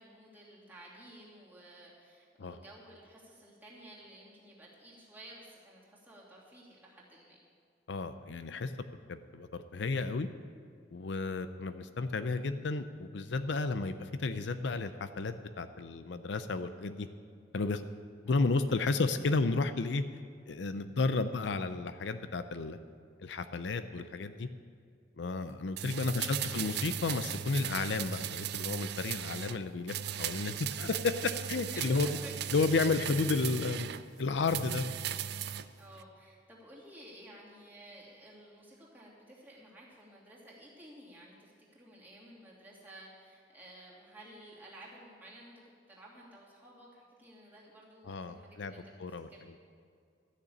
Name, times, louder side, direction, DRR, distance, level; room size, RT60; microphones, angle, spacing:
voice 1, 0.0-7.4 18.3-18.5 25.9-26.3 31.7-32.5 35.7-45.5 45.9-48.9 49.3-49.5, right 1 dB, 10° right, -6 dB, 2.7 m, -53 dB
voice 2, 7.9-8.7 9.1-10.3 10.9-17.1 17.5-17.9 18.2-20.0 20.5-22.8 23.2-24.5 25.2-32.2 32.5-33.9 34.2-34.9 48.0-48.7 49.0-49.3, left 3 dB, 70° left, 10 dB, 0.5 m, -32 dB
sound 1, 25.8-29.6 29.9-34.0 34.4-35.7 36.0-36.1, right 10 dB, 60° right, 0.4 m, -37 dB
13.0 x 6.7 x 8.6 m, 2.2 s
head